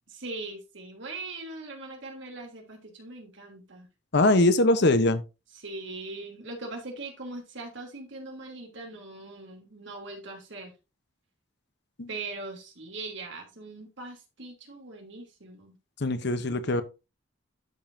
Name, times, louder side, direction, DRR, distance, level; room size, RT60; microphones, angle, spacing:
voice 1, 0.1-3.9 5.6-10.7 12.1-15.7 16.3-16.4, right 3 dB, 65° right, 3.0 m, -41 dB
voice 2, 4.1-5.2 12.0-12.1 16.0-16.8, left 2 dB, 55° left, 0.8 m, -22 dB
12.0 x 5.4 x 2.6 m
head